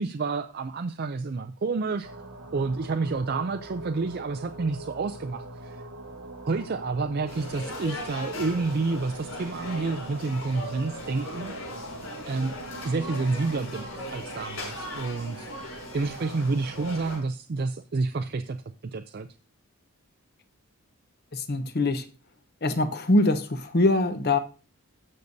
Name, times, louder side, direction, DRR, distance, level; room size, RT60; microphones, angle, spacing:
voice 1, 0.0-2.1 2.5-5.8 6.5-11.5 12.3-12.6 12.8-18.6 18.9-19.3, right 3 dB, 45° right, 0.4 m, -29 dB
sound 1, 2.0-17.0, right 2 dB, 85° right, 1.6 m, -43 dB
sound 2, 7.3-17.2, left 1 dB, 65° left, 5.6 m, -39 dB
voice 2, 21.3-22.0 22.6-24.4, left 2 dB, 45° left, 0.8 m, -23 dB
18.5 x 6.6 x 2.7 m
head